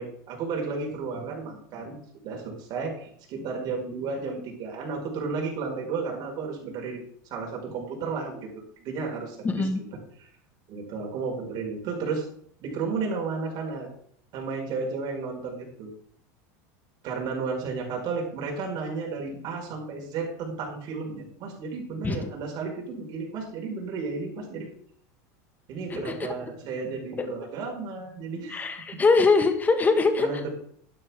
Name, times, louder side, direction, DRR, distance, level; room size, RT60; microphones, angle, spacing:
voice 1, 0.0-2.0 2.2-7.0 7.3-8.5 8.8-9.7 10.2-10.3 10.7-12.3 12.6-13.9 14.3-15.9 17.0-24.7 25.7-28.6 30.2-30.5, right 4 dB, 50° right, 0 dB, 4.9 m, -33 dB
voice 2, 9.4-9.8 22.0-22.2 25.9-26.1 27.2-27.3 28.5-30.3, left 4 dB, 20° left, 6 dB, 1.6 m, -22 dB
11.5 x 10.5 x 3.6 m, 0.64 s
supercardioid pair, 115°, 9 cm